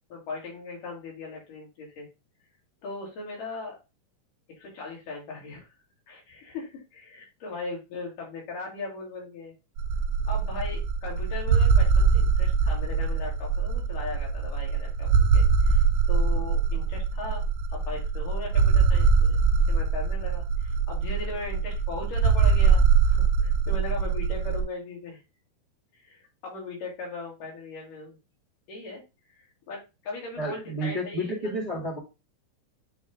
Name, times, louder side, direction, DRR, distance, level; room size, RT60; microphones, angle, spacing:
voice 1, 0.1-2.1 2.8-3.8 4.6-5.7 6.1-9.5 10.3-17.5 17.7-19.4 19.7-25.2 26.0-28.2 28.7-29.0 29.3-31.3, left 3 dB, 75° left, -2 dB, 3.9 m, -38 dB
sound 1, 9.8-24.6, right 5 dB, 80° right, 1.8 m, -23 dB
voice 2, 30.4-32.0, equal, 20° right, -4 dB, 0.9 m, -31 dB
9.0 x 3.3 x 3.5 m, 0.27 s
omnidirectional pair, 3.8 m